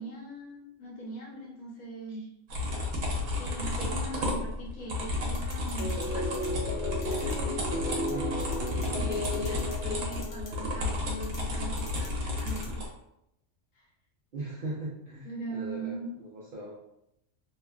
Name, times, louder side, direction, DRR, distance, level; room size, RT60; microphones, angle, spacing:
voice 1, 0.0-2.3 3.4-6.3 6.6-8.6 9.0-12.8 15.2-16.1, right 1 dB, 90° left, -4 dB, 1.4 m, -40 dB
sound 1, 2.5-12.9, left 2 dB, 85° right, 1.1 m, -32 dB
sound 2, 5.3-6.1 6.3-6.5 7.0-7.3 7.9-8.1 8.4-8.9 9.1-9.8 10.1-10.5 11.2-11.4 11.8-12.1 12.4-12.7, left 3 dB, 50° left, 0.6 m, -46 dB
sound 3, 5.8-10.9, left 1 dB, 20° right, 0.6 m, -35 dB
voice 2, 14.3-16.8, right 1 dB, 65° right, -5 dB, 0.5 m, -39 dB
3.0 x 2.2 x 2.2 m, 0.81 s
omnidirectional pair, 1.4 m